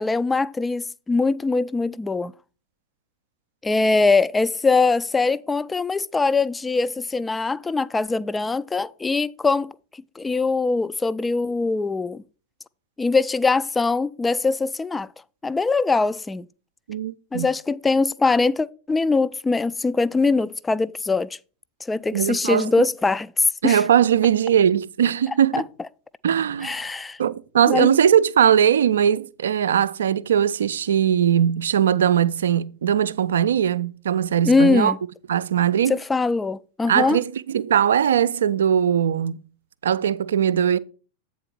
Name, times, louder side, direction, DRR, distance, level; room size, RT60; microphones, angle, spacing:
voice 1, 0.0-2.3 3.6-9.7 10.2-12.2 13.0-15.1 15.4-16.5 17.3-21.3 21.9-23.8 25.5-25.6 26.6-27.2 27.7-27.9 34.5-35.0 35.9-37.2, left 3 dB, 10° left, 0.3 m, -22 dB
voice 2, 16.9-17.5 22.1-22.9 23.6-25.7 26.2-26.8 27.2-34.9 35.3-36.0 36.9-39.4 39.8-40.8, right 9 dB, 65° right, 0.4 m, -20 dB
8.2 x 4.0 x 6.0 m
figure-of-eight pair, 90°, 0 cm